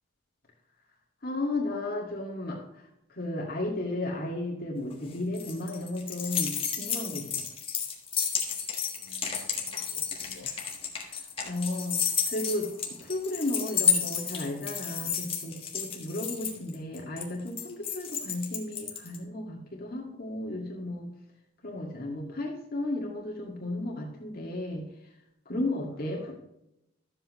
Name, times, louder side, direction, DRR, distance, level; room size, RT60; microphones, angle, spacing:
voice 1, 1.2-7.4 11.0-11.2 11.5-12.7 13.0-21.1 21.6-24.8 25.5-26.3, left 1 dB, 45° left, -2 dB, 2.1 m, -34 dB
sound 1, 4.9-19.2, left 7 dB, 25° left, 1.5 m, -31 dB
voice 2, 9.0-10.5 16.4-16.8 21.7-22.0 26.1-26.3, left 3 dB, 80° left, 6 dB, 1.3 m, -53 dB
13.5 x 7.6 x 3.1 m, 0.86 s
head